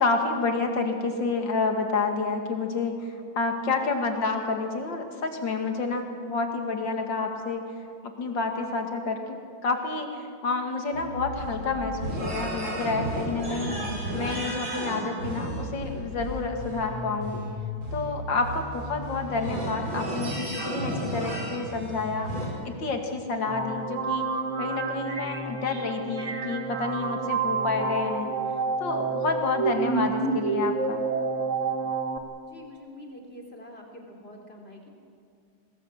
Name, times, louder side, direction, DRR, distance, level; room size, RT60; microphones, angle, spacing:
voice 1, 0.0-7.7 8.2-9.4 9.6-13.8 14.1-17.4 17.9-22.3 22.7-24.3 24.6-28.3 28.8-31.0, left 3 dB, 70° left, 4 dB, 2.9 m, -29 dB
sound 1, 10.9-22.5, equal, 90° right, 6.4 m, -33 dB
sound 2, 23.5-32.2, right 4 dB, 40° right, 1.7 m, -29 dB
voice 2, 32.5-34.9, left 1 dB, 30° left, 1 dB, 3.7 m, -45 dB
23.0 x 20.0 x 8.2 m, 2.2 s
omnidirectional pair, 2.1 m